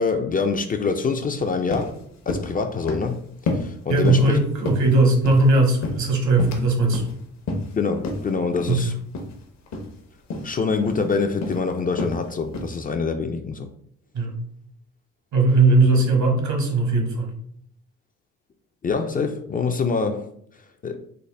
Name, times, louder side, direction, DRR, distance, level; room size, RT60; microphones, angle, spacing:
voice 1, 0.0-1.9 2.3-3.2 3.5-4.4 7.8-8.9 10.4-13.7 18.8-20.3 20.8-21.0, left 4 dB, 30° left, 6 dB, 0.4 m, -25 dB
sound 1, 1.4-1.5 1.7-1.9 2.3-2.5 2.9-3.1 3.5-3.7 4.0-4.3 4.6-5.5 5.8-6.7 6.9-7.1 7.5-7.7 8.0-8.2 8.6-8.8 9.1-9.3 9.7-9.9 10.3-10.5 10.9-11.1 11.4-11.6 12.0-12.2 12.5-12.8, left 2 dB, 60° left, 0.8 m, -29 dB
voice 2, 3.9-7.1 8.7-8.9 14.1-14.4 15.3-17.3, right 2 dB, 70° right, 3 dB, 1.0 m, -19 dB
3.9 x 2.1 x 3.3 m, 0.65 s
cardioid pair, 90°, 30 cm